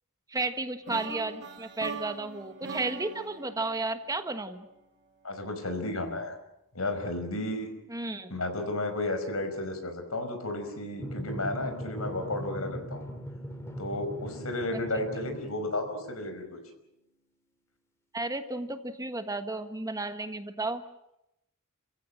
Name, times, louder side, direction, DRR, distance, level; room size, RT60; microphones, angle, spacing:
voice 1, 0.3-4.7 7.9-8.3 14.7-14.8 18.1-20.8, right 2 dB, 15° right, 9 dB, 1.4 m, -33 dB
sound 1, 0.9-4.8, right 4 dB, 55° right, 2.7 m, -42 dB
voice 2, 5.2-6.4 6.7-7.7 8.3-13.1 13.8-16.6, left 2 dB, 80° left, 7 dB, 5.4 m, -33 dB
Drum, 11.0-16.1, equal, 15° left, 2.4 m, -39 dB
29.5 x 15.5 x 8.9 m, 0.84 s
head